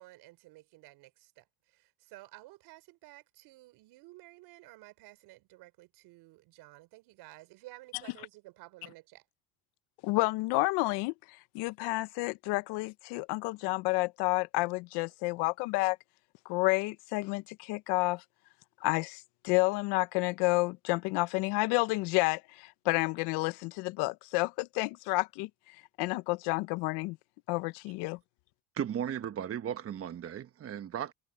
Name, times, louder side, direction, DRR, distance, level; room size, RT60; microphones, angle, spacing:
voice 1, 0.0-9.2, right 19 dB, 70° right, 4.1 m, -53 dB
voice 2, 10.0-11.1 11.5-16.0 16.4-18.2 18.8-25.5 26.0-27.2 27.5-28.2, left 23 dB, 80° left, 1.0 m, -30 dB
voice 3, 28.7-31.1, right 9 dB, 35° right, 1.1 m, -36 dB
cardioid pair, 110°, 40 cm